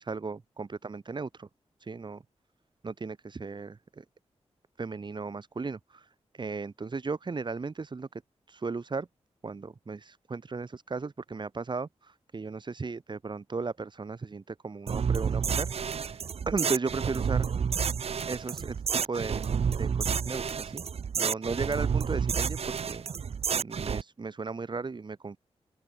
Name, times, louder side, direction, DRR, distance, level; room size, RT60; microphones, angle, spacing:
voice 1, 0.0-1.5 1.8-2.2 2.8-4.0 4.8-6.1 6.3-8.2 8.5-9.1 9.4-17.5 18.3-19.4 19.8-20.8 21.2-23.1 23.5-25.4, right 4 dB, 40° right, 2.1 m, -36 dB
sound 1, 14.9-24.0, right 6 dB, 65° right, 0.8 m, -30 dB
open air
wide cardioid pair, 90°, 11 cm